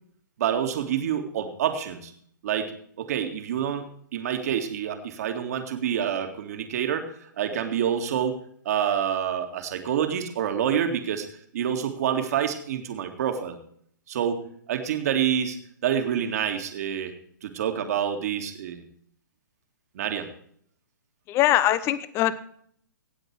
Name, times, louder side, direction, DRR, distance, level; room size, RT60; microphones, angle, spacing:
voice 1, 0.4-2.1 2.4-2.7 3.0-11.3 11.5-13.6 14.1-14.4 14.7-15.6 15.8-17.1 17.4-18.8 19.9-20.3, right 9 dB, 50° right, 6 dB, 2.1 m, -27 dB
voice 2, 21.3-22.4, left 13 dB, 25° left, 16 dB, 0.9 m, -22 dB
17.5 x 8.0 x 4.6 m, 0.63 s
hypercardioid pair, 130°, 11 cm